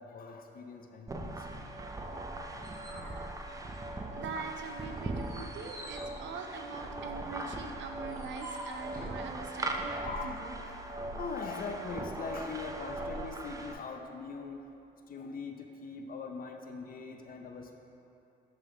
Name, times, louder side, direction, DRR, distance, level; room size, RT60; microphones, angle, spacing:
voice 1, 0.0-1.6 10.0-14.6 15.1-17.8, left 4 dB, 45° left, 4 dB, 0.6 m, -42 dB
sound 1, 1.1-13.7, right 2 dB, 15° right, 0.5 m, -40 dB
sound 2, 2.6-4.2 4.6-9.2, right 1 dB, 40° right, 1.5 m, -49 dB
voice 2, 3.8-10.7, right 4 dB, 70° right, 5 dB, 0.6 m, -43 dB
10.0 x 3.5 x 3.8 m, 2.8 s
cardioid pair, 90°, 20 cm